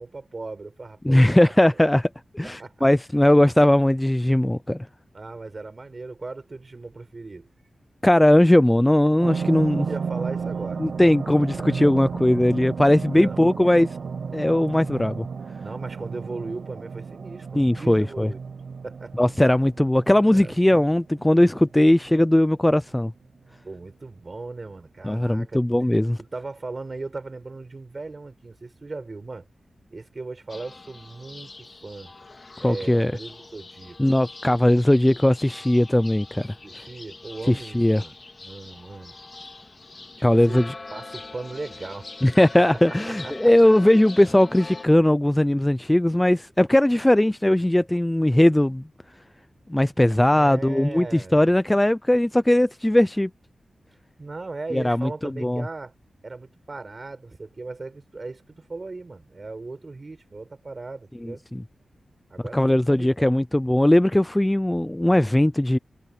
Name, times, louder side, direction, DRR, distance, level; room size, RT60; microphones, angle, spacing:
voice 1, 0.0-1.8 2.4-2.9 5.1-7.5 9.7-10.8 11.3-12.1 13.1-13.6 15.6-18.4 18.8-19.2 20.3-20.8 23.6-25.6 26.2-29.5 29.9-32.1 32.6-34.0 36.6-38.2 38.4-39.1 40.2-42.1 42.7-42.8 43.2-43.5 50.3-51.6 54.2-55.9 56.2-61.4 62.3-63.4, right 3 dB, 35° right, 6.3 m, -38 dB
voice 2, 1.0-2.1 2.3-4.9 8.0-9.8 10.8-13.9 14.3-15.3 17.6-18.3 19.2-23.1 25.0-26.2 32.6-33.1 34.0-36.5 37.5-38.0 40.2-40.7 42.2-48.8 49.7-53.3 54.7-55.7 61.2-61.6 62.5-65.8, left 1 dB, 10° left, 0.4 m, -19 dB
sound 1, 9.2-22.2 22.6-22.7, right 5 dB, 70° right, 0.8 m, -33 dB
sound 2, 30.5-44.9, left 3 dB, 35° left, 2.6 m, -43 dB
wide cardioid pair, 145°, 0 cm